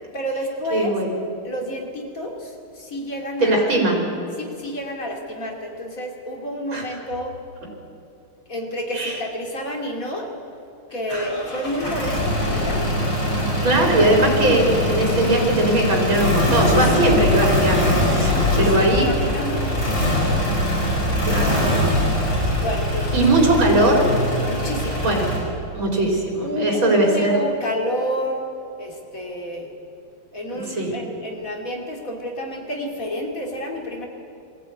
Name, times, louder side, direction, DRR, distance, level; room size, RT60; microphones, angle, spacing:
voice 1, 0.1-1.0 1.4-3.7 4.4-7.4 8.5-10.3 10.9-13.0 16.4-17.2 18.3-20.3 21.4-21.9 22.6-23.2 24.5-25.1 26.4-28.5 28.8-29.7 30.3-34.1, equal, 40° left, 1 dB, 3.0 m, -30 dB
voice 2, 0.7-1.1 3.4-4.0 6.7-6.8 8.9-9.2 11.1-11.3 13.6-19.1 21.3-22.0 23.1-24.1 25.0-25.3 25.7-27.4 30.5-30.9, right 2 dB, 65° right, 0 dB, 4.8 m, -20 dB
sound 1, 11.1-25.4, left 1 dB, 55° left, 6.2 m, -22 dB
21.5 x 15.5 x 9.6 m, 2.6 s
omnidirectional pair, 2.4 m